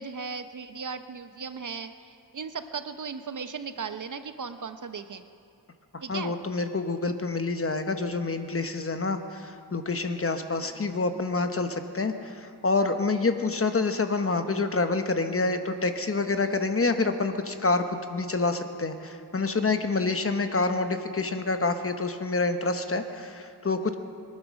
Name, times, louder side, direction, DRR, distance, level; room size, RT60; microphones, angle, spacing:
voice 1, 0.0-5.2 6.0-6.3 10.6-10.8 21.2-21.3, right 5 dB, 50° right, 10 dB, 0.8 m, -37 dB
voice 2, 6.1-23.9, left 3 dB, 35° left, 8 dB, 1.0 m, -27 dB
22.5 x 9.9 x 6.3 m, 2.5 s
wide cardioid pair, 85°, 40 cm